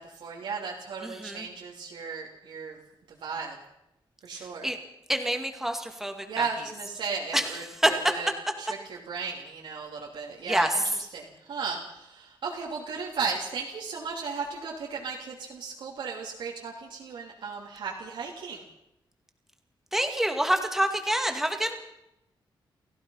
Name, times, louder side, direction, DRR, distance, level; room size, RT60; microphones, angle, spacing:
voice 1, 0.0-2.8 3.1-3.6 4.2-4.7 6.2-8.3 8.6-18.6, right 5 dB, 75° right, -3 dB, 3.1 m, -35 dB
voice 2, 1.0-1.5 4.3-4.8 5.1-6.5 7.3-7.5 7.8-7.9 10.5-10.8 19.9-21.7, right 1 dB, 5° right, 5 dB, 2.2 m, -27 dB
29.5 x 15.5 x 5.7 m, 0.87 s
wide cardioid pair, 155°, 8 cm